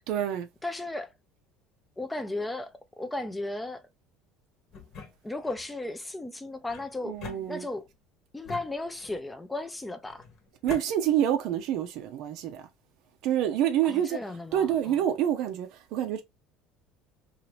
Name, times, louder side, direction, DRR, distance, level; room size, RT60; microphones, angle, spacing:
voice 1, 0.1-0.5 7.0-7.7 10.6-12.6 13.2-14.2 14.5-16.2, right 10 dB, 65° right, 0.5 m, -27 dB
voice 2, 0.6-1.1 2.0-3.9 5.2-7.2 7.5-7.8 8.3-10.2 13.8-14.9, left 2 dB, 10° left, 0.4 m, -35 dB
sound 1, 4.7-5.7 6.7-7.9 8.4-9.3 10.1-10.9, left 5 dB, 45° left, 1.1 m, -45 dB
2.8 x 2.4 x 3.0 m
cardioid pair, 130°, 0 cm